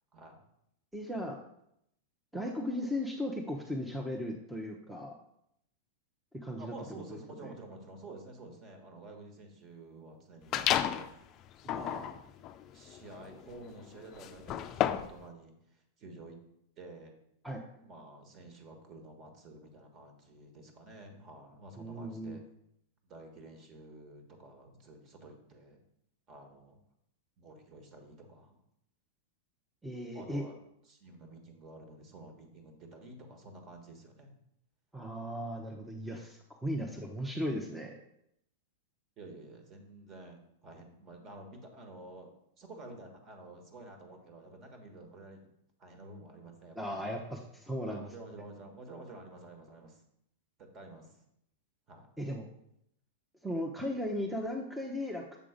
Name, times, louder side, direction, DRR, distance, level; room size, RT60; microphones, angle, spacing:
voice 1, 0.9-1.4 2.3-5.1 6.3-6.7 7.1-7.5 11.6-12.1 17.4-17.6 21.8-22.4 29.8-30.4 34.9-37.9 46.8-48.1 52.2-52.5 53.4-55.2, equal, 5° right, 0 dB, 0.7 m, -37 dB
voice 2, 6.6-11.1 11.7-12.2 12.7-15.5 16.0-16.4 16.8-17.1 17.8-22.4 23.0-25.8 26.3-26.8 27.4-28.6 30.1-30.6 30.9-34.3 39.2-42.3 42.6-45.5 45.8-47.0 47.8-50.0 50.6-51.1 51.9-52.1, right 2 dB, 35° right, 4 dB, 1.5 m, -50 dB
sound 1, 10.5-11.1 11.6-15.2, left 11 dB, 40° left, 0.4 m, -33 dB
7.0 x 3.7 x 5.1 m, 0.76 s
hypercardioid pair, 110°, 0 cm